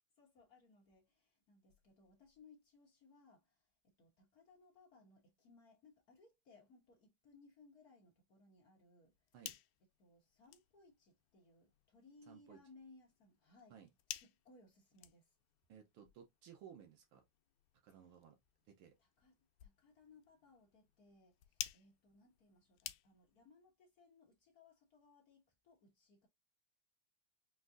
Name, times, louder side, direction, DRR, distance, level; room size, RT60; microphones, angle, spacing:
voice 1, 0.2-9.1 10.0-13.8 14.1-15.3 19.0-19.3 19.6-26.3, left 3 dB, 60° left, 0.9 m, -66 dB
sound 1, 9.0-23.5, left 13 dB, 85° left, 2.0 m, -54 dB
voice 2, 12.3-12.6 13.7-13.9 15.7-17.2 17.8-18.4 18.7-18.9, right 8 dB, 85° right, 1.1 m, -58 dB
5.9 x 2.6 x 2.5 m
omnidirectional pair, 3.3 m